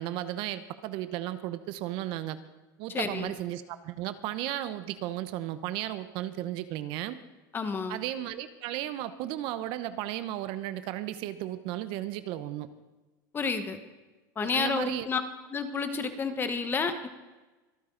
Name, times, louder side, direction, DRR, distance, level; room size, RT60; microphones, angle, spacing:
voice 1, 0.0-2.4 2.8-7.2 7.9-12.7 14.4-15.1, right 13 dB, 50° right, 13 dB, 0.9 m, -34 dB
voice 2, 2.9-3.3 7.5-8.0 13.3-13.8 14.4-15.2 15.5-17.1, left 5 dB, 20° left, 9 dB, 1.3 m, -30 dB
25.0 x 9.4 x 3.9 m, 1.1 s
supercardioid pair, 145°, 11 cm